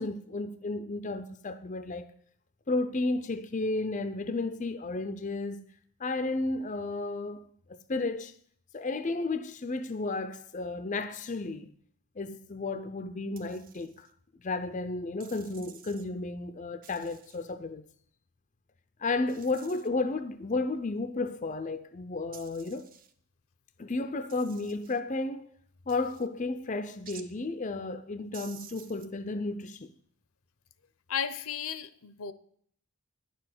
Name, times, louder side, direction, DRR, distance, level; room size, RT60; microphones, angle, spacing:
voice 1, 0.0-2.1 2.7-5.6 6.0-8.3 8.7-11.7 12.2-14.1 14.4-17.8 19.0-22.9 23.8-25.5 25.9-29.9, left 3 dB, 35° left, 0.5 m, -33 dB
sound 1, 13.4-14.1 15.2-16.1 16.8-17.5 19.3-19.9 22.3-23.1 24.3-25.0 25.9-26.3 27.1-27.3 28.3-29.1, right 8 dB, 40° right, 0.7 m, -52 dB
voice 2, 31.1-32.3, left 8 dB, 70° left, 0.7 m, -34 dB
10.0 x 6.9 x 7.8 m
head